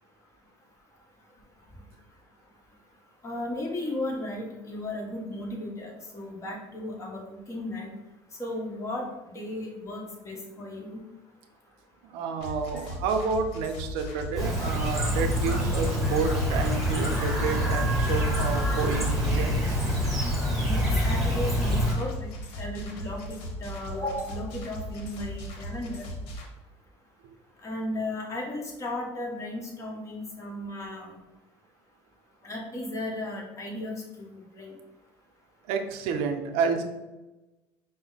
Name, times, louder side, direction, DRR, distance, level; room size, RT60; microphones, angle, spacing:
voice 1, 3.2-7.9 8.4-11.0 12.7-12.9 18.7-18.8 20.6-26.1 27.6-31.2 32.4-34.8, left 1 dB, 30° left, -1 dB, 1.2 m, -35 dB
voice 2, 12.0-19.8 35.6-36.8, right 5 dB, 80° right, 5 dB, 0.5 m, -30 dB
sound 1, 12.4-26.5, equal, 75° left, 0.9 m, -38 dB
Chirp tweet, 14.4-21.9, equal, ahead, 1.2 m, -26 dB
5.0 x 2.1 x 3.9 m, 1.0 s
cardioid pair, 110°, 10 cm